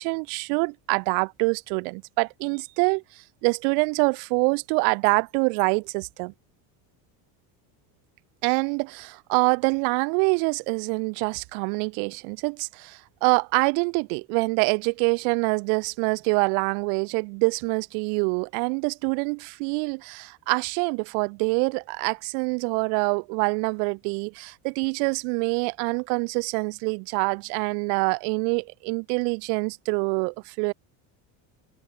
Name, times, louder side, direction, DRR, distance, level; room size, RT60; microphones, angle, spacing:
voice 1, 0.0-3.0 3.4-6.3 8.4-30.7, right 40 dB or more, 90° right, 1.2 m, -25 dB
cardioid pair, 180°, 43 cm